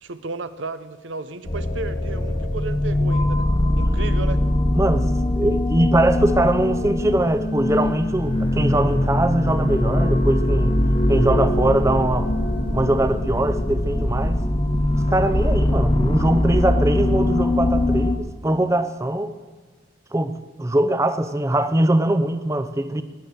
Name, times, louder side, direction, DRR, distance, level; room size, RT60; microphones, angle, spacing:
voice 1, 0.0-3.5 3.8-4.4, right 3 dB, 90° right, 12 dB, 0.8 m, -33 dB
sound 1, 1.5-18.2, left 1 dB, 30° left, 1.0 m, -21 dB
voice 2, 4.7-5.1 5.3-10.8 11.1-12.3 12.7-14.5 15.1-19.3 20.1-23.0, right 1 dB, 15° right, 11 dB, 0.5 m, -21 dB
19.5 x 7.8 x 6.8 m, 1.4 s
head